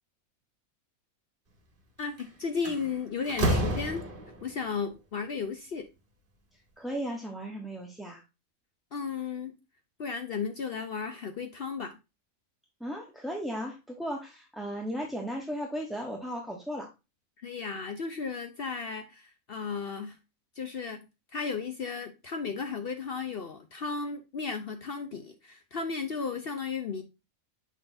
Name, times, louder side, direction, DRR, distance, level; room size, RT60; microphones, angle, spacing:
voice 1, 2.0-4.0 4.4-5.9 8.9-9.5 10.0-12.0 17.4-20.2 20.6-21.1 21.3-27.0, left 5 dB, 55° left, 7 dB, 0.8 m, -34 dB
Slam, 2.0-2.2 2.6-4.5, right 1 dB, 40° right, 1.5 m, -29 dB
voice 2, 6.8-8.2 12.8-16.9, equal, ahead, -1 dB, 0.8 m, -36 dB
6.3 x 5.8 x 2.6 m, 0.26 s
omnidirectional pair, 1.5 m